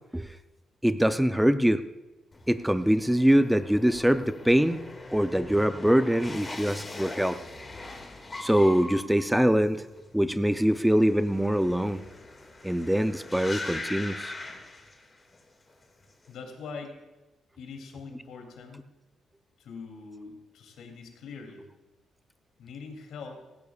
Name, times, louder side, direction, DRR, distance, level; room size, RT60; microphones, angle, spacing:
voice 1, 0.8-1.8 2.5-4.8 5.1-7.4 8.4-9.9 10.1-12.0 12.6-14.3, equal, 5° right, 10 dB, 0.5 m, -23 dB
sound 1, 2.3-15.4 15.7-16.3, left 2 dB, 25° left, 2.0 m, -41 dB
voice 2, 16.3-17.0 17.6-18.9 19.6-21.7 22.6-23.4, left 5 dB, 80° left, 2 dB, 2.8 m, -43 dB
17.5 x 15.5 x 2.4 m, 1.1 s
cardioid pair, 115°, 0 cm